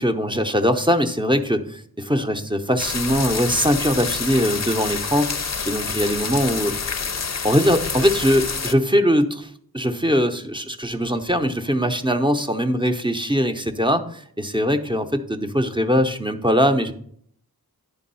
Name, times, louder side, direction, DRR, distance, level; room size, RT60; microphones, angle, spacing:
voice 1, 0.0-6.7 7.4-16.9, equal, 15° right, 6 dB, 0.7 m, -21 dB
sound 1, 2.8-8.7, left 5 dB, 45° left, 0.5 m, -28 dB
10.0 x 3.5 x 5.5 m, 0.63 s
wide cardioid pair, 45°, 37 cm